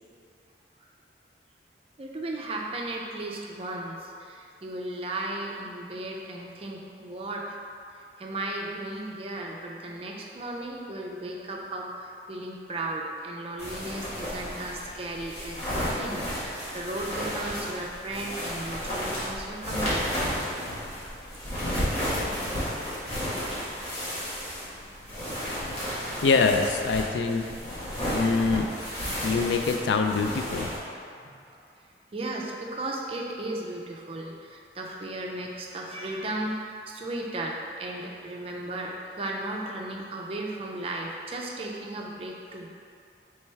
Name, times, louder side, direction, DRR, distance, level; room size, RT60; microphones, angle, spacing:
voice 1, 2.0-7.5 7.9-20.2 31.2-31.6 32.1-42.7, right 2 dB, 35° right, -1 dB, 0.4 m, -35 dB
sound 1, 13.6-30.8, equal, 35° left, 1.3 m, -32 dB
voice 2, 26.2-27.4 28.1-28.7 29.2-30.7, left 4 dB, 80° left, 6 dB, 0.3 m, -24 dB
3.3 x 3.3 x 4.4 m, 2.5 s
head